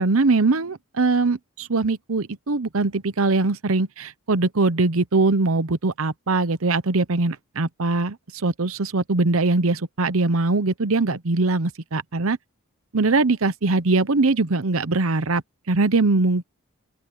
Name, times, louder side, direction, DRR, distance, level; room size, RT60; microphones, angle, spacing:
voice 1, 0.0-8.2 8.4-12.4 12.9-16.5, right 3 dB, 70° right, 0.9 m, -21 dB
open air
head